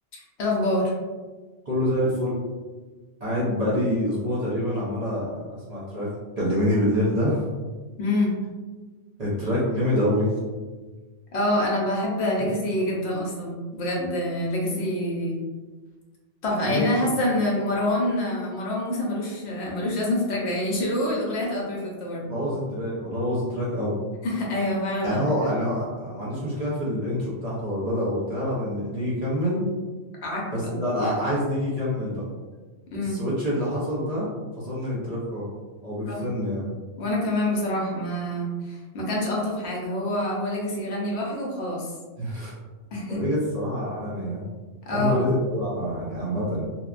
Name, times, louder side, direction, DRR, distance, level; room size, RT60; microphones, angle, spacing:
voice 1, 0.1-0.9 8.0-8.4 11.3-15.4 16.4-22.3 24.2-25.2 30.2-30.7 32.9-33.2 36.1-36.2 37.0-41.9 42.9-43.2 44.9-45.2, left 1 dB, 70° left, -3 dB, 0.9 m, -26 dB
voice 2, 1.7-2.4 3.2-7.5 9.2-10.3 16.6-16.9 22.2-24.0 25.0-29.6 30.5-32.2 33.0-34.3 34.6-35.5 35.8-36.6 42.2-42.5 43.1-44.4 44.9-46.7, equal, 40° right, -8 dB, 0.8 m, -26 dB
2.8 x 2.2 x 2.4 m, 1.3 s
omnidirectional pair, 1.2 m